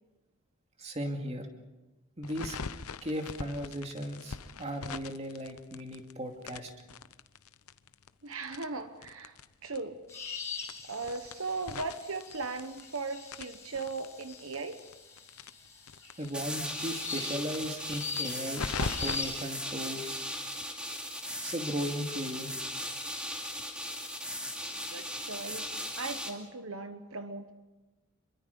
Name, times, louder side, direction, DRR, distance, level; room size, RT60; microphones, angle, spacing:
voice 1, 0.8-1.5 2.2-2.6 3.0-6.7 16.2-20.2 21.4-22.6, equal, 30° right, 3 dB, 2.5 m, -37 dB
sound 1, 2.2-6.1 6.4-9.5 9.7-9.8 10.1-10.2 10.6-13.0 13.3-16.3 16.6-16.7 16.9-17.0 17.4-19.2, left 5 dB, 80° left, 0.8 m, -40 dB
voice 2, 8.2-9.4 9.6-10.0 10.8-14.8 24.9-27.5, right 3 dB, 70° right, 8 dB, 1.2 m, -38 dB
sound 2, 10.1-25.1, left 4 dB, 15° left, 5.8 m, -44 dB
sound 3, 16.3-26.3, equal, 5° right, 2.5 m, -38 dB
27.5 x 23.5 x 5.4 m, 1.1 s
head